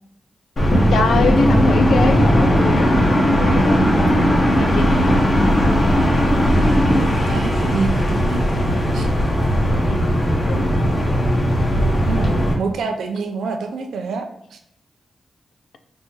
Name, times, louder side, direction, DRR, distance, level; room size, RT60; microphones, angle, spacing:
sound 1, 0.6-12.5, equal, 55° left, 1.2 m, -18 dB
voice 1, 0.9-5.3 9.9-10.2 10.5-10.9, left 4 dB, 80° left, 7 dB, 0.3 m, -24 dB
sound 2, 1.1-7.0, equal, 5° left, 1.0 m, -20 dB
voice 2, 6.9-9.1 9.6-9.8 12.0-14.6, right 4 dB, 85° right, 6 dB, 0.4 m, -27 dB
5.2 x 2.2 x 3.0 m, 0.74 s
supercardioid pair, 45°, 0 cm